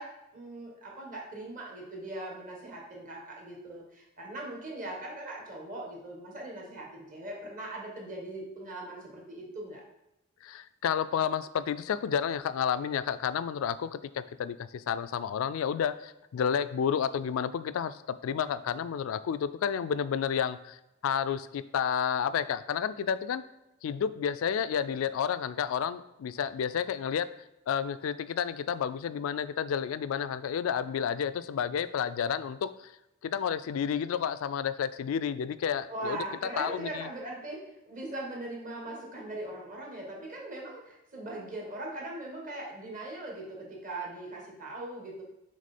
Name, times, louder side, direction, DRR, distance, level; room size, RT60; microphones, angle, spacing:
voice 1, 0.0-9.8 35.9-45.2, right 2 dB, 40° right, -1 dB, 1.5 m, -40 dB
voice 2, 10.4-20.8 21.0-23.4 23.8-27.3 27.7-32.9 33.2-36.2 36.6-37.1, left 8 dB, 75° left, 14 dB, 0.3 m, -31 dB
6.3 x 3.5 x 4.2 m, 0.88 s
head